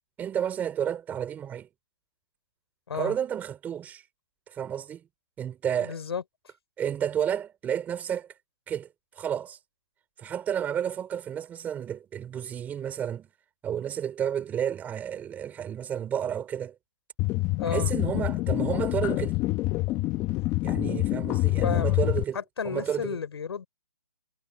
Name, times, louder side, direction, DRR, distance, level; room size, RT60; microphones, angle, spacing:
voice 1, 0.2-1.7 2.9-4.0 4.5-5.0 5.4-6.0 6.8-8.3 8.7-8.9 9.1-9.6 10.2-13.3 13.6-16.7 17.6-19.4 20.6-22.4 22.6-23.2, right 9 dB, 10° right, 4.3 m, -31 dB
voice 2, 5.8-6.2 17.6-17.9 21.6-22.0 22.3-23.7, left 6 dB, 65° left, 7.1 m, -32 dB
sound 1, 17.2-22.2, left 19 dB, 20° left, 1.5 m, -26 dB
hypercardioid pair, 155°, 14 cm